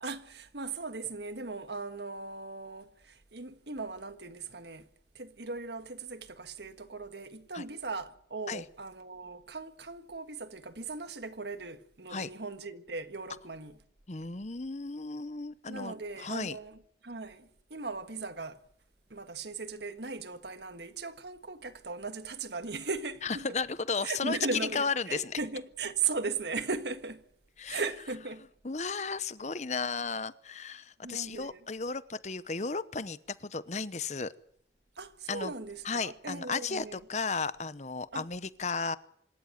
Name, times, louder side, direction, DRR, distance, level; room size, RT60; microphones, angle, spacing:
voice 1, 0.0-4.9 5.1-13.8 15.7-18.6 19.1-23.5 24.0-27.2 27.7-28.5 31.0-31.6 34.9-37.0 38.1-38.3, right 4 dB, 70° right, 1.6 m, -38 dB
voice 2, 14.1-16.6 23.2-25.4 27.6-27.8 28.6-34.3 35.3-35.5 35.8-39.0, left 4 dB, 40° left, 0.9 m, -34 dB
25.5 x 13.5 x 9.2 m
head